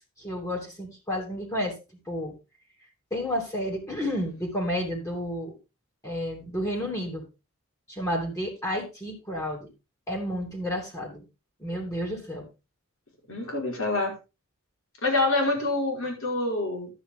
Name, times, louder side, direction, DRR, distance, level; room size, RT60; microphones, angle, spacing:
voice 1, 0.2-1.7 2.1-2.3 3.1-5.6 6.0-7.2 7.9-9.7 10.1-11.2 11.6-12.5, equal, 15° left, 1 dB, 2.9 m, -31 dB
voice 2, 13.3-14.1 15.0-16.9, left 2 dB, 70° left, 0 dB, 5.2 m, -26 dB
11.5 x 8.6 x 3.8 m, 0.28 s
head